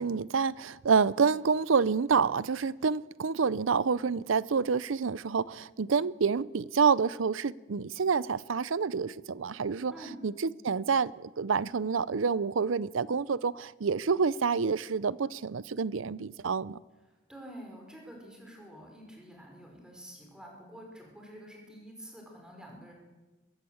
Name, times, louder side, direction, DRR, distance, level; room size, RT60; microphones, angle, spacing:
voice 1, 0.0-9.9 10.2-10.3 10.6-16.8, right 5 dB, 80° right, 0.6 m, -28 dB
voice 2, 17.0-22.9, equal, 5° right, 5.2 m, -48 dB
21.5 x 16.0 x 7.9 m
head